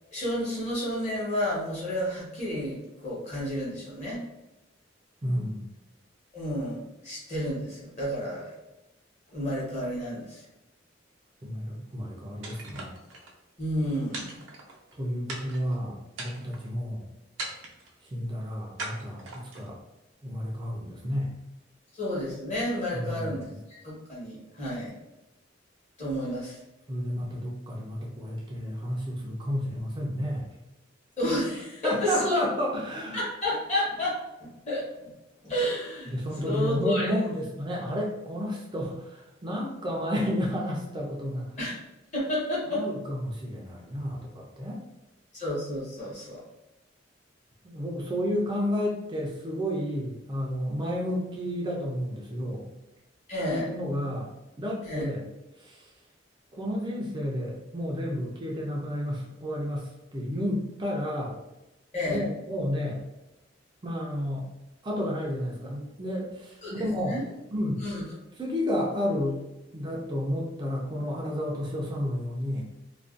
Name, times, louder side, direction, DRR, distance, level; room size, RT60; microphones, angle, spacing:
voice 1, 0.1-4.2 6.3-8.5 9.3-10.4 13.6-14.4 21.9-23.5 23.8-24.9 26.0-26.6 31.2-32.4 33.1-34.9 35.4-36.2 36.4-37.1 41.6-41.8 42.1-42.8 45.3-46.4 53.3-53.7 54.8-55.0 61.9-62.3 66.6-67.3 67.8-68.1, left 1 dB, 40° left, -6 dB, 1.0 m, -31 dB
voice 2, 5.2-5.6 11.4-12.9 15.0-17.1 18.1-19.8 20.2-21.3 22.9-23.5 26.9-30.5 31.8-33.2 36.1-41.5 42.7-44.8 47.6-52.7 53.4-55.2 55.6-55.9 56.5-61.4 62.0-63.0 63.8-64.5 64.8-67.1 67.5-67.8 68.4-69.4 69.7-72.6, equal, 25° right, -3 dB, 0.4 m, -31 dB
sound 1, 12.4-13.3 14.1-14.9 15.3-15.7 16.1-16.7 17.4-17.9 18.8-19.7, right 2 dB, 90° right, 0.5 m, -39 dB
2.4 x 2.2 x 2.4 m, 0.96 s
head